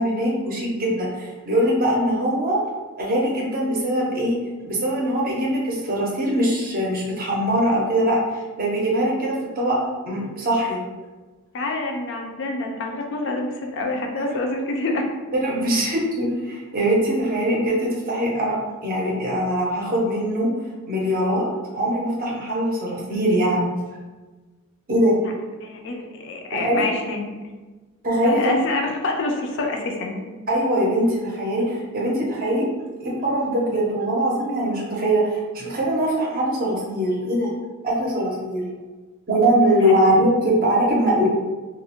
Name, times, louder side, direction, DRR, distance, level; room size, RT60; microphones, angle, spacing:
voice 1, 0.0-2.6 3.0-4.4 4.6-9.8 10.1-10.8 13.8-13.9 14.2-14.4 15.3-18.6 18.8-20.5 20.9-21.5 21.7-23.7 24.9-25.2 26.5-26.9 28.0-28.5 30.5-32.7 33.0-37.5 37.8-38.6 39.3-41.3, right 1 dB, 40° right, -3 dB, 0.5 m, -22 dB
voice 2, 11.5-15.1 15.7-15.9 25.2-25.3 25.6-27.3 28.2-30.3 39.8-39.9, left 2 dB, 55° left, 2 dB, 0.3 m, -27 dB
2.3 x 2.0 x 2.8 m, 1.3 s
head